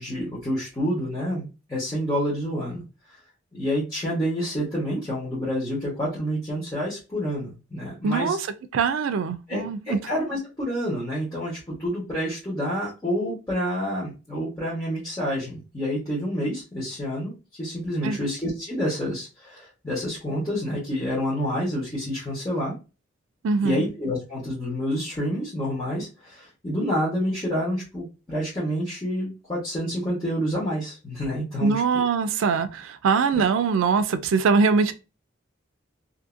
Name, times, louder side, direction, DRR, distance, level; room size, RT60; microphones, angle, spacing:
voice 1, 0.0-2.8 3.5-8.4 9.5-17.3 17.6-22.7 23.6-31.7 33.3-33.4, equal, 20° left, 1.1 m, -28 dB
voice 2, 8.0-8.5 8.7-10.0 18.0-18.3 23.4-23.8 31.6-34.9, right 5 dB, 85° right, 0.4 m, -22 dB
2.7 x 2.6 x 2.5 m
head